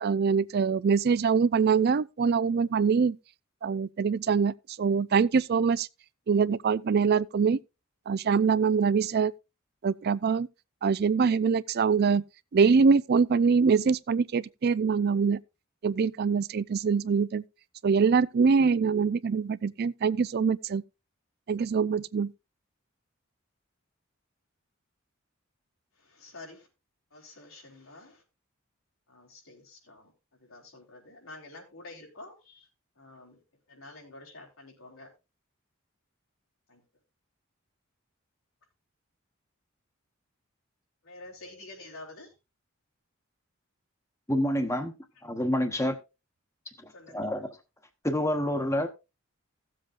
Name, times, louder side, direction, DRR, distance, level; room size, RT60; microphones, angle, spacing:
voice 1, 0.0-3.2 3.6-5.9 6.3-7.6 8.1-9.3 9.8-10.5 10.8-12.2 12.5-15.4 15.8-17.4 17.8-20.8 21.5-22.3, right 5 dB, 50° right, 0.4 m, -24 dB
voice 2, 26.1-26.7 27.1-28.2 29.1-30.1 30.5-32.7 33.0-33.4 33.7-35.1 36.7-36.8 41.0-42.3 46.9-47.4, left 2 dB, 90° left, 4.1 m, -48 dB
voice 3, 44.3-44.9 45.2-46.0 47.1-47.6 48.0-48.9, left 1 dB, 15° left, 1.0 m, -27 dB
17.0 x 7.6 x 2.5 m
head